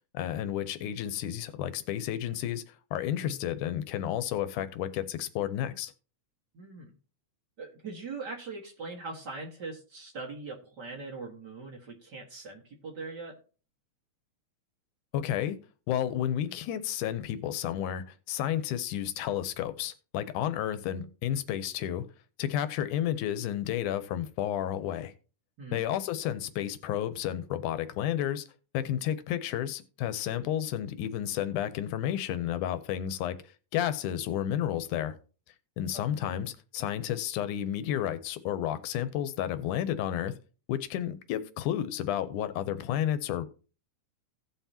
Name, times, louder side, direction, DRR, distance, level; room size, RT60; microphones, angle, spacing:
voice 1, 0.1-5.9 15.1-15.6 15.9-22.1 22.4-25.1 25.7-28.4 28.7-33.4 33.7-35.2 35.8-40.3 40.7-43.5, left 11 dB, 85° left, 2.2 m, -31 dB
voice 2, 6.5-6.9 7.6-13.4 25.6-25.9 35.9-36.1, right 3 dB, 40° right, 1.9 m, -41 dB
17.0 x 5.7 x 2.9 m
omnidirectional pair, 3.5 m